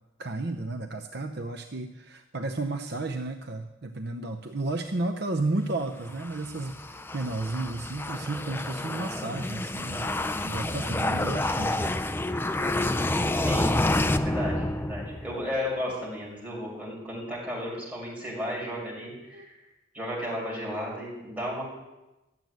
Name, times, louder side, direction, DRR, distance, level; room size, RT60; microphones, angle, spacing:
voice 1, 0.2-12.0 19.3-19.5, right 2 dB, 50° right, 6 dB, 0.7 m, -33 dB
sound 1, 6.1-15.5, left 1 dB, 10° left, 0.4 m, -29 dB
voice 2, 13.3-13.7 14.2-19.5 19.9-21.6, equal, 5° right, -5 dB, 6.2 m, -34 dB
13.5 x 7.8 x 9.3 m, 1.0 s
head